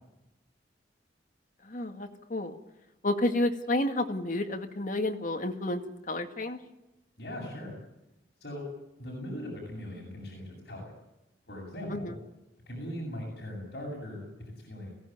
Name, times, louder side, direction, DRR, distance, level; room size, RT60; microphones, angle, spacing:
voice 1, 1.6-2.6 3.0-5.8 6.1-6.6 11.9-12.1, left 1 dB, 50° left, 5 dB, 2.0 m, -30 dB
voice 2, 7.2-7.7 8.4-8.7 9.0-10.9 11.5-12.1 12.7-14.9, left 1 dB, 65° left, -3 dB, 7.5 m, -39 dB
22.5 x 17.0 x 9.3 m, 0.91 s
head